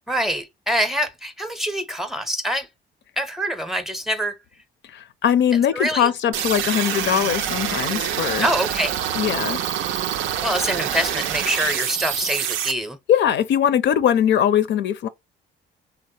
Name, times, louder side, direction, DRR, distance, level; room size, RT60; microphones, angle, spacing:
voice 1, 0.1-2.7 3.2-4.4 5.7-6.1 8.4-9.0 10.4-13.0, equal, ahead, 0.6 m, -25 dB
voice 2, 4.9-8.5 9.2-9.6 13.1-15.1, left 9 dB, 65° left, 0.4 m, -21 dB
sound 1, 6.3-12.7, right 10 dB, 90° right, 0.5 m, -26 dB
3.3 x 2.0 x 2.7 m
cardioid pair, 90°, 20 cm